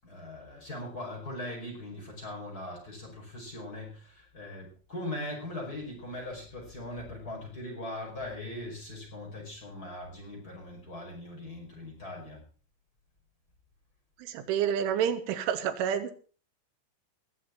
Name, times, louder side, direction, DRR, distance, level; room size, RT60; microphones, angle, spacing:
voice 1, 0.0-12.4, left 1 dB, 20° left, -2 dB, 5.3 m, -40 dB
voice 2, 14.2-16.1, right 8 dB, 90° right, 9 dB, 3.8 m, -29 dB
20.5 x 7.3 x 5.8 m, 0.40 s
omnidirectional pair, 5.5 m